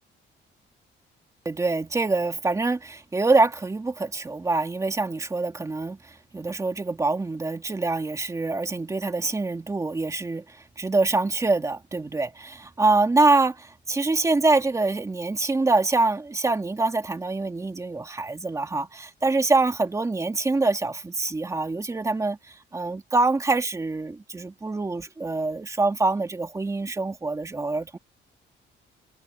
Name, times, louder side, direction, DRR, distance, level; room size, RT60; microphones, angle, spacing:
voice 1, 1.4-28.0, right 3 dB, 15° right, 2.5 m, -25 dB
cardioid pair, 150°, 20 cm